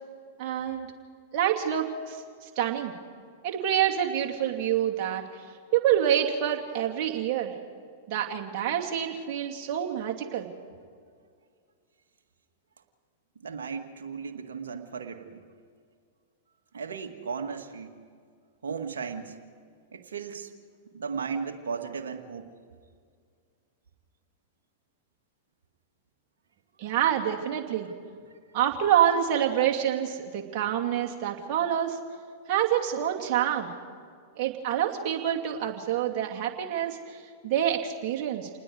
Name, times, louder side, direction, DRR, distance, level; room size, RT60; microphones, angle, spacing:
voice 1, 0.4-0.9 1.3-2.2 2.4-2.9 3.4-5.2 5.7-7.5 8.1-10.5 26.8-27.9 28.5-32.0 32.5-33.7 34.4-38.5, right 10 dB, 45° right, 0 dB, 2.6 m, -27 dB
voice 2, 13.4-15.4 16.7-17.9 18.6-19.3 19.9-20.5 20.9-22.5, right 5 dB, 70° right, 4 dB, 1.7 m, -35 dB
28.5 x 19.5 x 4.9 m, 2.1 s
figure-of-eight pair, 95°, 0 cm